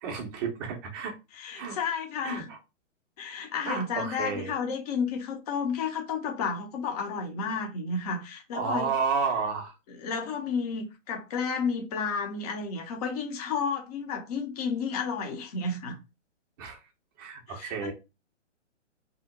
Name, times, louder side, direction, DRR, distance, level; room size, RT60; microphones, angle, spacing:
voice 1, 0.0-1.1 1.6-1.8 2.2-2.6 3.7-4.5 8.5-9.7 16.6-16.8 17.2-17.9, right 5 dB, 20° right, 0.5 m, -31 dB
voice 2, 1.3-2.5 3.2-8.9 9.9-16.0 17.5-17.9, left 5 dB, 35° left, 0.6 m, -32 dB
2.8 x 2.1 x 3.6 m
hypercardioid pair, 140°, 37 cm